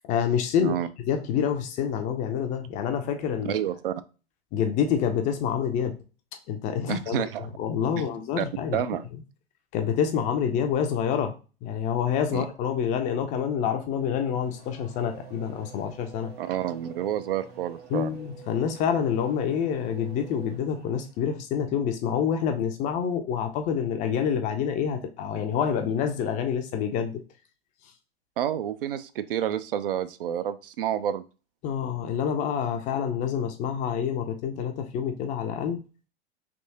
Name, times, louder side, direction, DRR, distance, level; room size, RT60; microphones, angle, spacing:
voice 1, 0.0-0.8 1.1-3.6 4.5-6.0 6.5-7.3 7.6-8.8 9.7-11.3 11.6-16.3 17.9-27.2 31.6-35.8, left 8 dB, 25° left, 6 dB, 0.4 m, -27 dB
voice 2, 3.4-3.9 6.9-7.5 8.0-8.1 8.4-9.1 12.3-12.5 16.4-18.2 28.4-31.2, right 10 dB, 60° right, 13 dB, 0.4 m, -29 dB
Race car auto racing / Accelerating revving vroom, 14.0-21.2, right 6 dB, 80° right, 1.5 m, -47 dB
3.4 x 2.7 x 2.8 m, 0.34 s
figure-of-eight pair, 95°, 32 cm